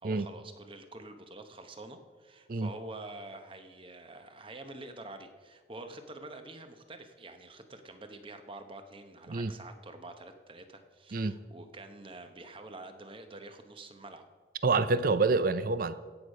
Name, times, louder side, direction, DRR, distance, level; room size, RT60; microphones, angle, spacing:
voice 1, 0.0-14.2, right 2 dB, 30° right, 7 dB, 0.9 m, -47 dB
voice 2, 14.6-15.9, right 3 dB, 50° right, 14 dB, 0.5 m, -27 dB
16.5 x 6.5 x 5.4 m, 1.4 s
head